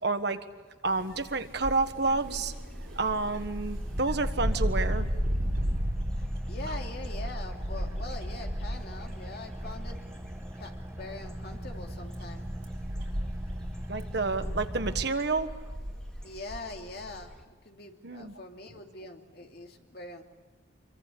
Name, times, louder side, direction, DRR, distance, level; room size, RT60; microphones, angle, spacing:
voice 1, 0.0-0.4 0.8-2.5 3.0-5.1 13.9-15.5 18.0-18.3, right 3 dB, 55° right, 9 dB, 1.4 m, -29 dB
sound 1, 0.8-9.3 9.7-10.1 10.6-10.7 11.6-16.6, equal, 80° right, 4.3 m, -34 dB
sound 2, 2.0-17.4, equal, 5° left, 2.3 m, -43 dB
Car / Idling, 2.8-15.7, right 1 dB, 15° right, 1.5 m, -43 dB
voice 2, 6.2-10.0 10.5-12.4 16.2-17.3 17.6-20.2, left 2 dB, 50° left, 2 dB, 2.7 m, -43 dB
26.5 x 23.5 x 8.5 m, 1.2 s
head